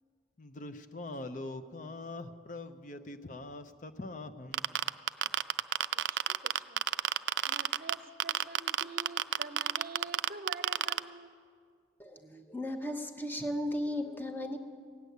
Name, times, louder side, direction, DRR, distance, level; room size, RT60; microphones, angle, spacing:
voice 1, 0.4-5.0, left 2 dB, 45° left, 9 dB, 0.6 m, -43 dB
sound 1, 4.5-7.9 8.2-11.0, right 11 dB, 85° right, 0.4 m, -28 dB
voice 2, 6.0-6.8 7.5-11.4, right 3 dB, 55° right, 10 dB, 0.7 m, -46 dB
voice 3, 12.0-14.6, left 1 dB, 10° left, 6 dB, 0.8 m, -35 dB
16.5 x 8.2 x 9.3 m, 2.1 s
head